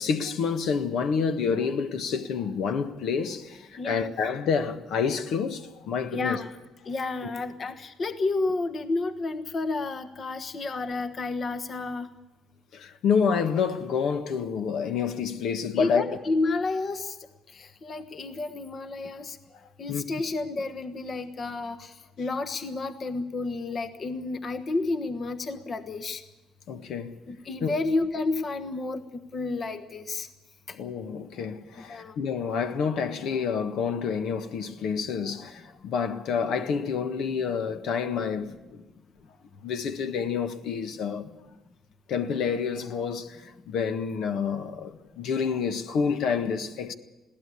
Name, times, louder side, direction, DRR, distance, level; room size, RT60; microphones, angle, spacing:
voice 1, 0.0-6.4 7.2-7.3 12.7-16.1 19.9-20.0 26.7-27.2 27.6-27.7 30.7-38.8 39.6-41.3 42.1-46.9, left 6 dB, 75° left, 1.6 m, -28 dB
voice 2, 3.8-4.1 6.1-6.5 6.9-12.1 15.7-17.1 17.5-19.4 19.8-26.2 27.3-30.3 31.9-32.1, left 3 dB, 40° left, 1.3 m, -31 dB
21.5 x 16.5 x 8.4 m
cardioid pair, 110°, 0 cm